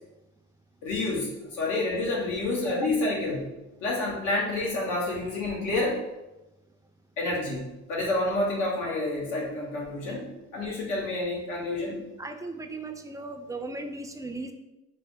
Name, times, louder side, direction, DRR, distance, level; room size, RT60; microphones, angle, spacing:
voice 1, 0.8-3.5 3.8-6.0 7.2-12.0, left 2 dB, 90° left, -3 dB, 1.2 m, -29 dB
voice 2, 12.2-14.5, right 2 dB, 10° right, 5 dB, 0.3 m, -36 dB
4.3 x 2.1 x 3.5 m, 0.99 s
cardioid pair, 90°, 30 cm